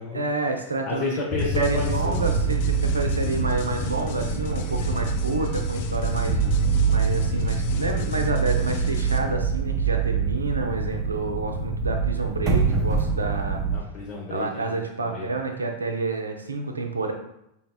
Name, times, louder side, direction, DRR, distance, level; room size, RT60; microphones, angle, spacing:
voice 1, 0.1-1.2 1.5-6.4 6.9-13.6 14.3-17.1, right 3 dB, 75° right, 4 dB, 0.5 m, -29 dB
voice 2, 0.8-2.2 13.7-15.3, left 4 dB, 35° left, -6 dB, 0.9 m, -31 dB
sound 1, 1.3-13.8, right 4 dB, 30° right, 0.6 m, -25 dB
sound 2, 1.4-9.2, left 7 dB, 50° left, 0.5 m, -36 dB
5.3 x 2.8 x 2.3 m, 0.81 s
figure-of-eight pair, 90°, 0 cm